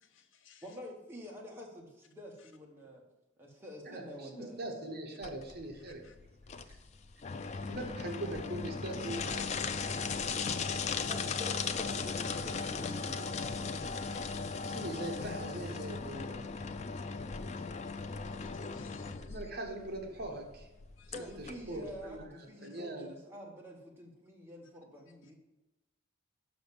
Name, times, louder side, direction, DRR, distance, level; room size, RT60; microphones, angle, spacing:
voice 1, 0.0-0.7 6.0-6.1 14.1-14.5 17.0-17.1 17.6-17.7 18.3-19.5 21.0-21.1 22.7-22.8, left 6 dB, 70° left, 7 dB, 0.7 m, -60 dB
voice 2, 0.6-3.0 3.4-4.7 6.6-6.8 11.1-14.1 21.1-25.3, equal, 10° right, -2 dB, 1.3 m, -48 dB
voice 3, 3.9-6.0 7.6-9.5 14.7-16.5 19.2-20.7 21.4-23.1, right 1 dB, 50° right, 2 dB, 1.2 m, -41 dB
sound 1, 5.2-22.3, left 5 dB, 35° left, 0.3 m, -37 dB
6.1 x 5.1 x 6.8 m, 0.98 s
head